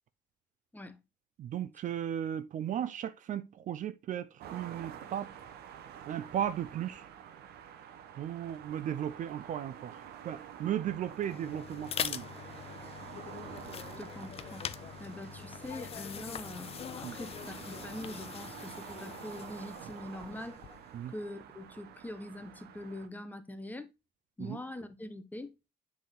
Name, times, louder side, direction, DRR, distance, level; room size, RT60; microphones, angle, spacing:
voice 1, 1.4-5.3 6.1-7.0 8.2-10.0 10.2-12.3 17.0-17.2 20.9-21.1 24.4-24.6, right 10 dB, 50° right, 0.4 m, -36 dB
sound 1, 4.4-23.1, right 9 dB, 70° right, 0.8 m, -48 dB
sound 2, 11.1-21.0, left 9 dB, 35° left, 0.4 m, -43 dB
voice 2, 14.0-20.6 21.1-23.9 24.4-25.5, left 1 dB, 10° left, 0.7 m, -44 dB
7.7 x 3.6 x 3.6 m
cardioid pair, 110°, 17 cm